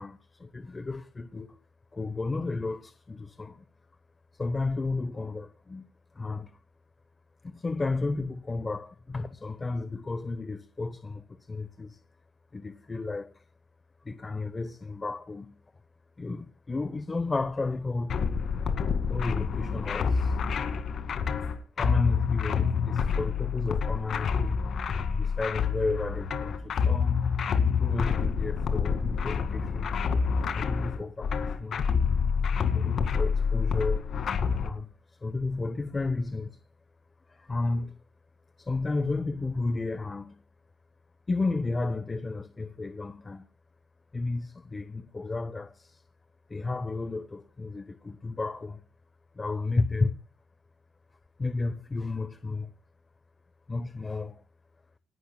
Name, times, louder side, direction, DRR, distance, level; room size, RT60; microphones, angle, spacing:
voice 1, 0.0-1.6 1.9-3.6 4.3-5.9 6.1-6.6 7.4-12.0 12.5-13.4 14.0-15.5 16.2-18.1 19.1-20.4 21.8-24.6 25.2-27.3 27.7-30.0 30.5-31.9 32.7-34.1 34.6-34.9 35.2-36.5 37.3-37.9 38.6-40.4 41.3-43.5 44.1-46.0 46.5-48.8 49.4-50.1 51.4-52.7 53.7-54.4, left 3 dB, 25° left, 0.9 m, -32 dB
sound 1, 18.1-34.7, left 6 dB, 60° left, 2.0 m, -27 dB
29.0 x 11.5 x 2.2 m
cardioid pair, 90°, 0 cm